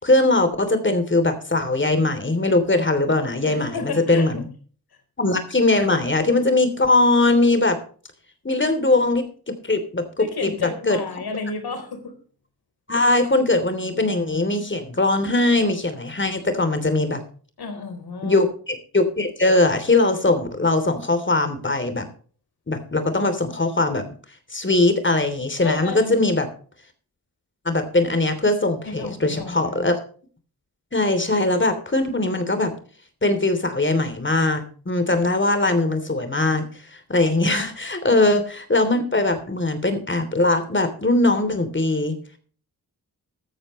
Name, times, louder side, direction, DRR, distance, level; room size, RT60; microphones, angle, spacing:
voice 1, 0.0-4.5 5.2-7.8 8.4-11.0 12.9-17.2 18.2-22.1 22.7-24.0 24.5-26.5 27.6-30.0 30.9-32.7 33.2-36.6 37.1-42.2, left 2 dB, 30° left, 9 dB, 3.1 m, -21 dB
voice 2, 3.4-4.4 10.2-12.1 17.6-18.5 25.6-26.3 28.8-29.9, left 4 dB, 80° left, 7 dB, 4.0 m, -32 dB
14.0 x 13.5 x 3.1 m, 0.43 s
cardioid pair, 65°, 38 cm